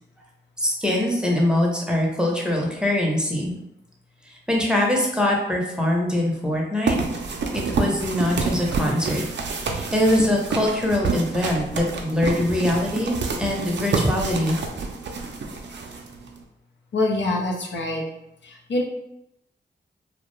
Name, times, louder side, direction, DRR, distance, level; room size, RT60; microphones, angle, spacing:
voice 1, 0.6-3.5 4.3-7.0 7.5-9.2 9.6-13.1 13.4-14.6, left 1 dB, 5° right, -2 dB, 0.6 m, -23 dB
sound 1, 6.9-16.4, right 3 dB, 70° right, 0.4 m, -28 dB
voice 2, 16.9-18.0 18.4-18.8, left 2 dB, 70° left, -1 dB, 0.5 m, -25 dB
2.3 x 2.1 x 3.0 m, 0.85 s
cardioid pair, 55°, 19 cm